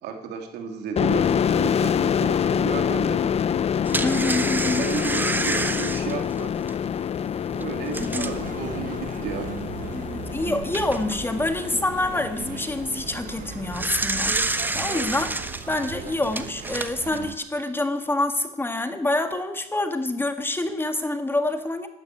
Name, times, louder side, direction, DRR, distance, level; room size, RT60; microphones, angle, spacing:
voice 1, 0.0-3.3 4.8-6.5 7.4-9.5, right 7 dB, 85° right, 4 dB, 2.9 m, -33 dB
sound 1, 1.0-14.4, left 8 dB, 40° left, 0.5 m, -26 dB
sound 2, 1.3-1.4 1.9-2.0 3.5-8.5 9.1-9.2 9.6-9.7 10.4-11.2 13.4-17.2, right 2 dB, 10° right, 0.9 m, -29 dB
voice 2, 4.0-4.8 7.9-8.4 9.9-15.3 15.7-21.9, left 2 dB, 15° left, 7 dB, 1.6 m, -27 dB
sound 3, 8.0-17.4, right 8 dB, 55° right, 1.2 m, -38 dB
12.5 x 11.5 x 9.3 m, 0.90 s
cardioid pair, 110°, 17 cm